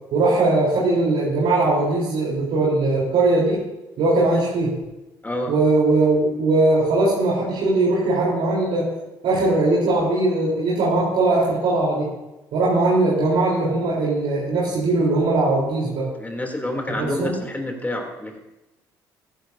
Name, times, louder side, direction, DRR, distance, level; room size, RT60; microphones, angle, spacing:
voice 1, 0.1-3.6 4.0-4.7 5.5-8.9 9.2-12.1 12.5-16.1 17.0-17.3, right 2 dB, 65° right, -7 dB, 3.9 m, -20 dB
voice 2, 5.2-5.5 16.2-18.4, left 1 dB, 15° left, 2 dB, 3.1 m, -28 dB
15.5 x 14.5 x 2.8 m, 1.0 s
hypercardioid pair, 50°, 10 cm